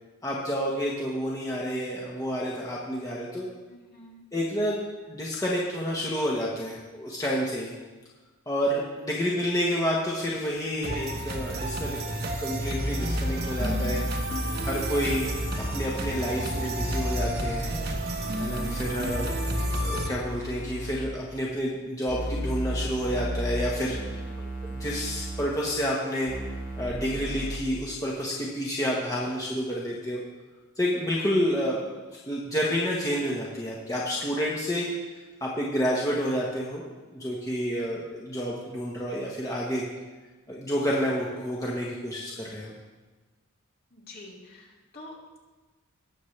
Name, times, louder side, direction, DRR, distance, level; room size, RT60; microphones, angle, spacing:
voice 1, 0.2-3.5 4.3-7.7 8.5-14.2 14.6-17.7 18.4-19.3 19.8-24.0 24.7-26.3 26.8-30.2 30.8-31.8 32.1-34.9 35.4-36.8 37.1-39.8 40.5-42.7, equal, 15° left, -4 dB, 1.2 m, -29 dB
voice 2, 3.7-4.2 24.0-24.5 43.9-45.4, left 1 dB, 45° left, -2 dB, 2.2 m, -48 dB
sound 1, 10.8-20.1, right 1 dB, 45° right, 1.2 m, -32 dB
sound 2, 12.6-21.0 22.1-25.5 26.3-27.6, equal, 75° left, 2.0 m, -33 dB
19.0 x 7.2 x 3.3 m, 1.3 s
head